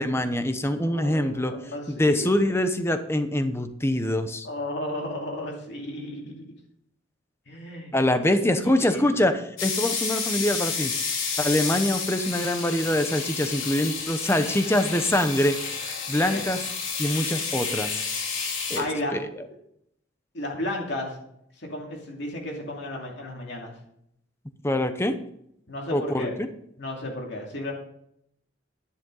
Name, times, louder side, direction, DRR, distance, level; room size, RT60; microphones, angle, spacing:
voice 1, 0.0-1.5 1.9-4.5 7.9-10.9 11.4-15.6 16.1-16.6 17.0-18.0 18.7-18.8 19.1-19.3 24.6-25.2 25.9-26.5, left 1 dB, 15° left, 9 dB, 0.8 m, -24 dB
voice 2, 0.9-2.3 4.4-6.3 7.5-8.3 8.6-9.0 16.3-16.4 18.7-19.2 20.3-21.2 21.6-23.7 25.7-26.3 26.8-27.7, left 1 dB, 60° left, 0 dB, 2.5 m, -33 dB
sound 1, 9.6-18.8, left 5 dB, 80° left, 3.1 m, -30 dB
10.5 x 10.0 x 3.9 m, 0.73 s
head